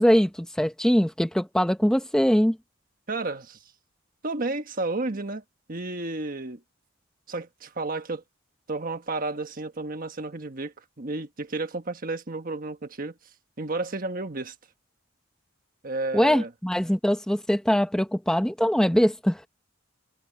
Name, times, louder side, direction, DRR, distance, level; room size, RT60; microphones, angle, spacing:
voice 1, 0.0-2.6 16.1-19.4, equal, 5° left, 0.7 m, -22 dB
voice 2, 3.1-3.6 4.2-5.4 5.7-6.6 7.3-8.2 8.7-13.1 13.6-14.5 15.8-16.5, right 2 dB, 45° right, 1.4 m, -32 dB
head